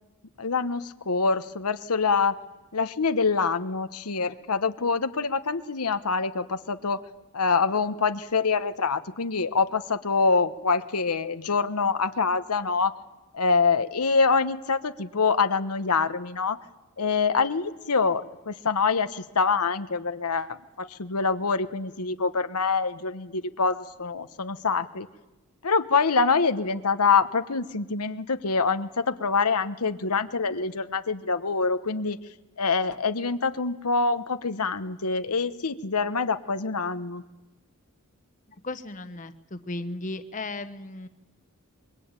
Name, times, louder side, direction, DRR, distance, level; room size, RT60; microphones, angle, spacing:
voice 1, 0.4-2.3 2.7-7.0 7.3-12.9 13.3-16.6 17.0-25.1 25.6-32.2 32.6-37.2, left 4 dB, 85° left, 10 dB, 1.1 m, -25 dB
voice 2, 38.6-41.1, left 2 dB, 35° left, 10 dB, 1.1 m, -35 dB
25.0 x 22.5 x 9.0 m, 1.1 s
head